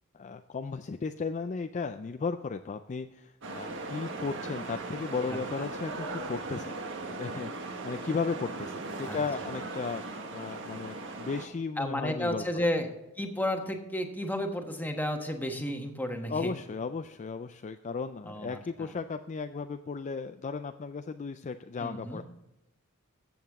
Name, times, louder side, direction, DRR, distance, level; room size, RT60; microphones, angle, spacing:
voice 1, 0.1-6.8 7.2-10.0 10.3-12.7 16.3-22.2, left 4 dB, 35° left, 8 dB, 0.4 m, -35 dB
sound 1, 3.4-11.5, right 2 dB, 60° right, 1.4 m, -38 dB
voice 2, 11.8-12.9 13.2-16.5 18.3-18.9 21.8-22.2, left 1 dB, 10° left, 4 dB, 1.2 m, -32 dB
14.0 x 7.8 x 3.6 m, 0.96 s
head